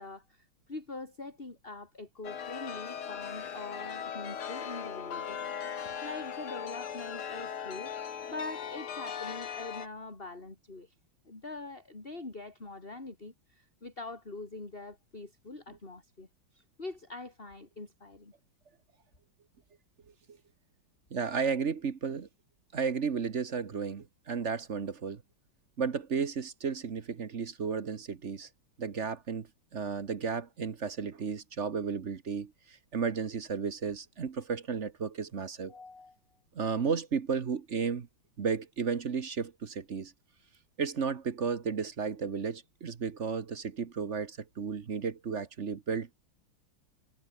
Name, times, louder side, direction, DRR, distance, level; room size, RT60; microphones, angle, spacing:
voice 1, 0.0-5.4 6.0-7.9 8.3-11.0 11.3-18.3 35.7-36.2, left 3 dB, 25° left, 3.7 m, -44 dB
Chime, 2.2-9.9, left 8 dB, 75° left, 2.7 m, -39 dB
voice 2, 21.1-22.3 22.7-25.2 25.8-28.5 28.8-29.5 29.7-35.7 36.5-38.1 38.4-40.1 40.8-46.1, right 6 dB, 40° right, 1.2 m, -33 dB
omnidirectional pair, 2.3 m